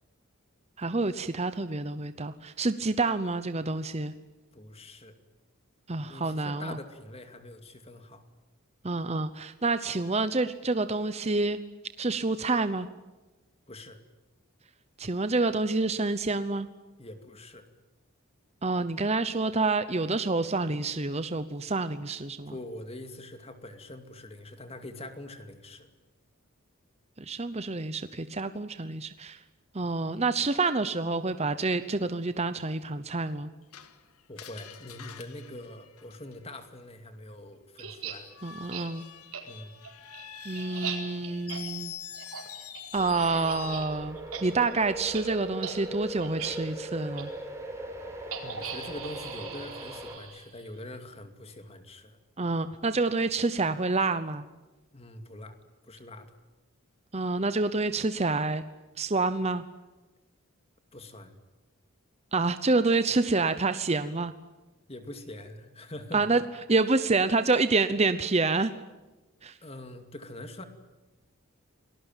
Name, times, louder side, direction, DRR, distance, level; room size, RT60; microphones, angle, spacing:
voice 1, 0.8-4.1 5.9-6.8 8.8-11.6 12.0-12.9 15.0-16.7 18.6-22.5 27.2-29.4 29.7-33.5 38.4-39.0 40.5-41.9 42.9-47.3 52.4-54.4 57.1-58.6 59.0-59.6 62.3-64.3 66.1-66.4 66.7-68.7 69.4-69.6, right 3 dB, 30° right, 11 dB, 0.8 m, -28 dB
voice 2, 4.5-5.1 6.1-8.2 13.7-14.0 17.0-17.7 22.5-25.9 34.3-38.3 39.4-39.7 48.4-52.2 54.9-55.6 55.9-56.4 60.9-61.3 64.9-66.2 69.6-70.6, left 1 dB, 25° left, 7 dB, 2.4 m, -44 dB
Screech, 33.7-36.6 38.3-44.0, left 9 dB, 85° left, 2.1 m, -45 dB
sound 1, 37.8-38.2 38.7-38.9 39.3-39.4 39.8-43.9 44.2-44.4 44.7-44.8 45.1-45.2 45.6-45.8 46.2-46.5 47.2-47.3 48.3-50.7, right 7 dB, 80° right, 4.6 m, -39 dB
sound 2, 42.9-50.2, right 1 dB, 15° right, 4.4 m, -40 dB
28.5 x 20.0 x 9.1 m, 1.1 s
head